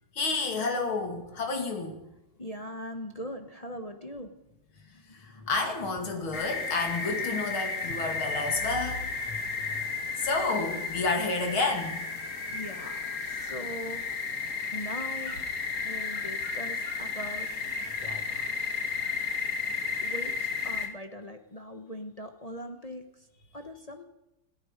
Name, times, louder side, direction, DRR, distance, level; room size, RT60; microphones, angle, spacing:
voice 1, 0.1-2.0 5.1-9.4 9.7-9.8 10.2-12.1 18.0-18.4, left 3 dB, 75° left, 3 dB, 3.2 m, -30 dB
voice 2, 2.4-4.4 5.2-5.5 6.0-6.4 12.5-14.0 14.7-15.3 15.8-17.5 18.0-18.2 20.0-20.3 20.6-23.0 23.5-24.0, equal, 30° left, 5 dB, 0.7 m, -40 dB
sound 1, 6.3-20.9, left 4 dB, 50° left, 2.3 m, -33 dB
27.0 x 9.6 x 5.2 m, 0.93 s
omnidirectional pair, 2.3 m